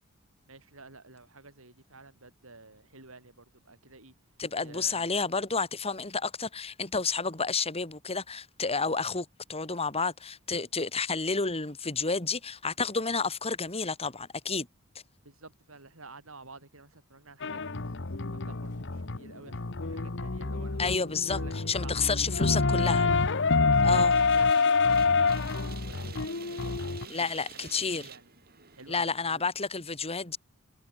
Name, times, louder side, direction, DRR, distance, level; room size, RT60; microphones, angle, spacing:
voice 1, 0.5-4.1 4.6-5.1 15.2-19.6 19.8-20.8 21.3-21.9 22.4-23.2 23.6-27.3 27.6-28.3 28.7-29.4, right 3 dB, 70° right, 5.6 m, -51 dB
voice 2, 4.4-14.7 20.8-23.0 23.8-24.1 27.1-28.1 28.9-30.4, left 4 dB, 30° left, 2.7 m, -30 dB
sound 1, 17.4-27.0, left 4 dB, 60° left, 1.2 m, -27 dB
sound 2, 24.1-29.1, right 7 dB, 45° right, 4.8 m, -49 dB
head